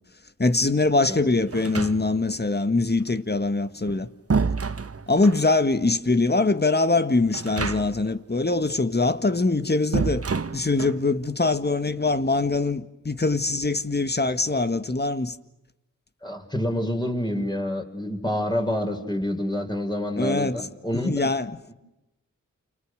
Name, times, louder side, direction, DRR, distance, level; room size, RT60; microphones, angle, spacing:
voice 1, 0.4-4.1 5.1-10.2 10.5-15.4 20.2-20.6 21.0-21.5, left 3 dB, 30° left, 1.9 m, -23 dB
sound 1, 1.5-2.4 3.6-5.5 7.3-8.1 8.4-8.5 9.9-11.0, right 5 dB, 45° right, 1.3 m, -28 dB
voice 2, 16.2-21.3 21.7-21.8, left 1 dB, 10° left, 5.9 m, -28 dB
29.5 x 27.5 x 6.6 m
cardioid pair, 45°, 34 cm